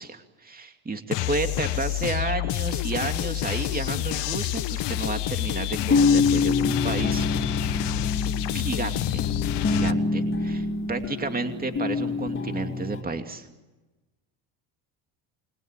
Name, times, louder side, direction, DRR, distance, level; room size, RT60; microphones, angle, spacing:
voice 1, 0.0-7.3 8.5-9.3 9.7-13.5, right 3 dB, 20° right, 6 dB, 2.6 m, -31 dB
sound 1, 1.1-9.9, left 15 dB, 65° left, 1.5 m, -28 dB
sound 2, 5.8-13.0, left 4 dB, 25° left, 3.3 m, -26 dB
28.5 x 21.5 x 9.2 m, 1.1 s
cardioid pair, 100°, 45 cm